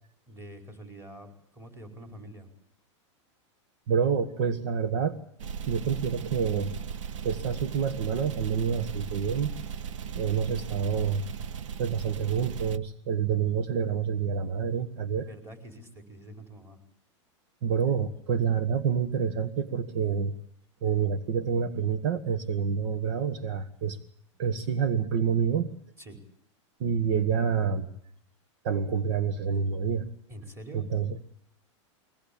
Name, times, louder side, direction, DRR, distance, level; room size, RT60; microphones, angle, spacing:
voice 1, 0.3-2.5 15.3-16.8 26.0-26.2 30.3-30.8, right 1 dB, 15° right, 5 dB, 5.0 m, -46 dB
voice 2, 3.9-5.2 5.6-6.8 7.2-9.5 10.1-11.3 11.8-15.3 17.6-20.3 20.8-24.0 24.4-25.7 26.8-27.9 28.6-30.1 30.7-31.2, right 7 dB, 65° right, 11 dB, 1.6 m, -27 dB
sound 1, 5.4-12.8, right 7 dB, 85° right, 0.8 m, -37 dB
23.0 x 18.0 x 8.6 m, 0.68 s
supercardioid pair, 130°, 16 cm